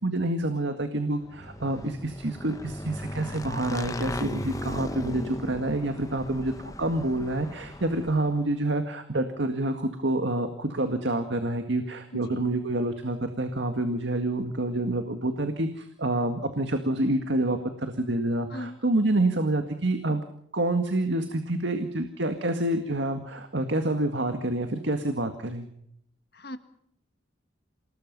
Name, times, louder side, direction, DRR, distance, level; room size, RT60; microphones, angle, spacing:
voice 1, 0.0-20.2 20.5-25.7, right 1 dB, 70° right, 7 dB, 1.9 m, -27 dB
Motorcycle / Engine, 1.2-8.5, left 1 dB, 15° left, 1.0 m, -37 dB
voice 2, 12.1-12.5 18.5-18.8 26.3-26.6, left 1 dB, 55° left, 9 dB, 1.7 m, -38 dB
28.0 x 19.5 x 5.5 m, 0.72 s
head